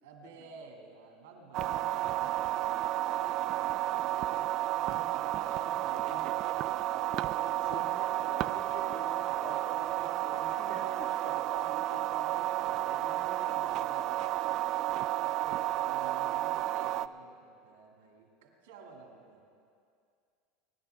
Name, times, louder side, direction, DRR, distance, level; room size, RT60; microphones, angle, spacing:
voice 1, 0.0-1.7 2.5-3.0 3.5-5.0 5.3-6.6 15.2-19.4, right 4 dB, 85° right, 1 dB, 2.3 m, -53 dB
sound 1, 1.5-17.1, right 14 dB, 55° right, 0.3 m, -32 dB
voice 2, 1.6-2.0 2.6-2.7 3.0-3.4 4.9-5.2 5.7-6.2 7.0-14.3 14.8-14.9, left 3 dB, 85° left, -3 dB, 2.6 m, -49 dB
21.0 x 10.5 x 3.5 m, 2.3 s
supercardioid pair, 100°, 0 cm